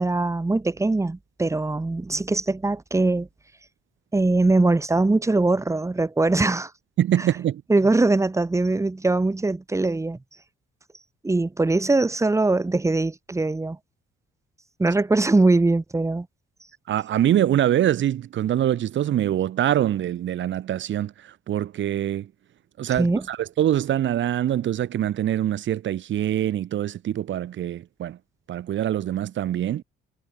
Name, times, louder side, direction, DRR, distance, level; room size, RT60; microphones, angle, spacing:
voice 1, 0.0-3.3 4.1-6.7 7.7-10.2 11.2-13.8 14.8-16.3 23.0-23.2, right 2 dB, 15° right, 1.3 m, -21 dB
voice 2, 7.0-7.6 16.9-22.3 22.8-28.2 28.5-29.8, right 11 dB, 70° right, 3.9 m, -24 dB
cardioid pair, 90°, 20 cm